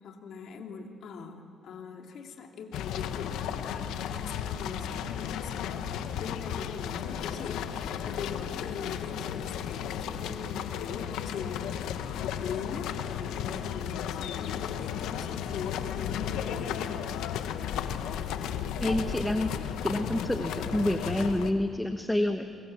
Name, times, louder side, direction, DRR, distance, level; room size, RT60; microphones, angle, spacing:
voice 1, 0.0-12.9 13.2-16.8, left 6 dB, 70° left, 3 dB, 2.7 m, -41 dB
sound 1, 2.7-21.5, left 9 dB, 90° left, 1.2 m, -34 dB
voice 2, 18.8-22.4, left 1 dB, 5° left, 6 dB, 1.2 m, -28 dB
28.0 x 23.0 x 7.7 m, 2.4 s
cardioid pair, 90°, 0 cm